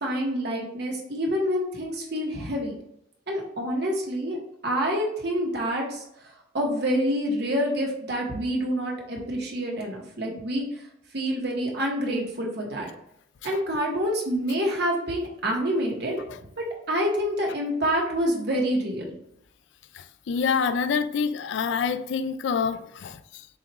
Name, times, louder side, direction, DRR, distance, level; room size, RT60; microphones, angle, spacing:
voice 1, 0.0-2.7 3.3-4.4 4.6-6.0 6.5-10.6 11.1-12.9 13.4-16.2 16.9-19.1, equal, 55° right, 1.1 m, -27 dB
voice 2, 19.9-23.5, left 6 dB, 65° left, 0.3 m, -27 dB
7.0 x 2.4 x 3.0 m
head